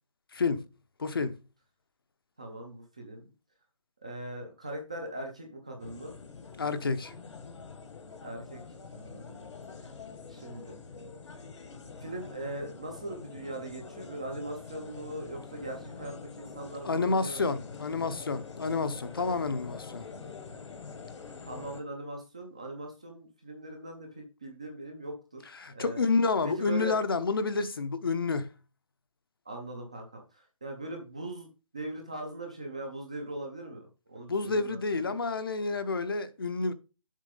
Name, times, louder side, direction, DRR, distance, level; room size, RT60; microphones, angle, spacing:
voice 1, 0.3-0.6 1.0-1.4 6.6-7.1 16.8-20.0 25.5-28.5 34.3-36.7, left 4 dB, 40° left, 0.7 m, -29 dB
voice 2, 2.4-3.2 4.0-6.2 8.2-8.6 8.9-9.5 10.3-10.7 12.0-17.4 21.5-25.5 25.7-26.0 26.4-27.0 29.5-31.5 31.7-35.2, right 2 dB, 10° right, 0.5 m, -40 dB
sound 1, 5.8-21.8, left 5 dB, 60° left, 1.2 m, -45 dB
7.4 x 4.6 x 5.1 m
hypercardioid pair, 180°, 17 cm